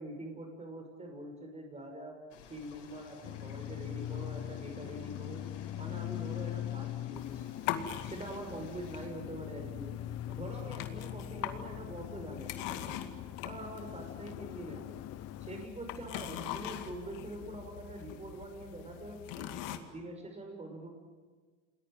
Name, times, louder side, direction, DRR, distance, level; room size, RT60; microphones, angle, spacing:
voice 1, 0.0-2.2 2.5-5.4 5.8-7.5 8.1-10.0 10.3-12.8 13.4-15.0 15.4-19.5 19.9-20.9, right 1 dB, 20° right, 3 dB, 6.4 m, -44 dB
sound 1, 2.3-9.1, left 5 dB, 90° left, 5.4 m, -54 dB
sound 2, 3.2-15.7, left 13 dB, 45° left, 0.9 m, -42 dB
sound 3, 7.1-19.8, left 11 dB, 70° left, 2.3 m, -43 dB
28.5 x 20.5 x 9.2 m, 1.5 s
supercardioid pair, 90°, 35 cm